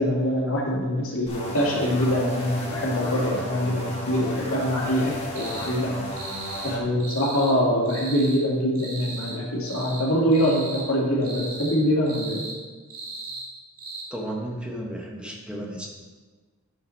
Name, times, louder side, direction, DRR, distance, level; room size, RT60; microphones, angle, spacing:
voice 1, 0.0-5.9 6.6-12.4, equal, 80° left, -3 dB, 2.4 m, -24 dB
sound 1, 1.3-6.8, left 1 dB, 30° left, 1.6 m, -34 dB
cicada insect loop, 5.3-5.7 6.1-6.7 7.0-7.5 7.8-8.4 8.7-9.4 9.6-10.0 10.3-10.8 11.2-11.7 12.1-12.6 12.9-13.5 13.8-14.0, right 3 dB, 40° right, 2.2 m, -37 dB
voice 2, 14.1-15.9, right 1 dB, 5° right, -2 dB, 1.3 m, -33 dB
10.5 x 7.7 x 4.1 m, 1.4 s
head